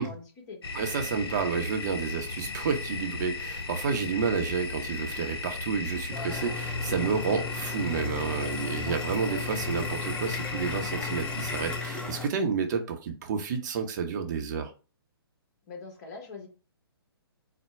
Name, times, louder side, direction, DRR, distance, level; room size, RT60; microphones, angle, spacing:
voice 1, 0.0-0.6 15.7-16.5, left 4 dB, 45° left, 1 dB, 1.4 m, -43 dB
sound 1, 0.6-11.8, left 4 dB, 70° left, 0.7 m, -35 dB
voice 2, 0.7-14.7, right 6 dB, 45° right, 5 dB, 0.8 m, -30 dB
sound 2, 6.1-12.3, left 4 dB, 10° left, 0.5 m, -36 dB
4.2 x 2.2 x 4.5 m, 0.34 s
hypercardioid pair, 135°, 13 cm